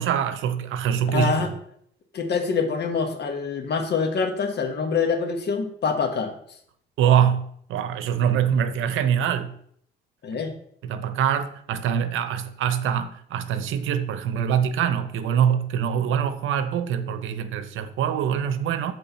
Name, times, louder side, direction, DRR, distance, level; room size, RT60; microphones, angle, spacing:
voice 1, 0.0-1.5 7.0-9.5 10.8-18.9, right 8 dB, 85° right, 0.7 m, -24 dB
voice 2, 1.1-1.5 2.1-6.4 10.2-10.5, left 5 dB, 55° left, 1.4 m, -25 dB
8.4 x 3.7 x 5.6 m
cardioid pair, 90°, 20 cm